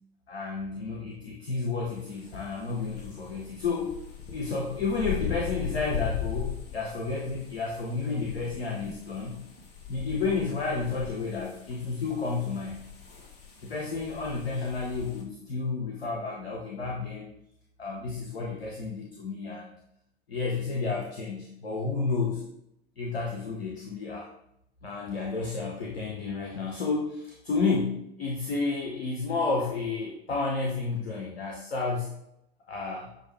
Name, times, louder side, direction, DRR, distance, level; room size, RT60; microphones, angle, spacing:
voice 1, 0.3-3.9 4.3-9.4 9.9-12.8 13.6-17.3 17.8-19.7 20.3-22.4 23.0-24.3 24.8-32.1 32.7-33.1, left 4 dB, 85° left, -1 dB, 0.7 m, -31 dB
sound 1, 2.0-15.2, left 9 dB, 35° left, 1.0 m, -40 dB
6.2 x 2.4 x 3.3 m, 0.79 s
figure-of-eight pair, 80°, 31 cm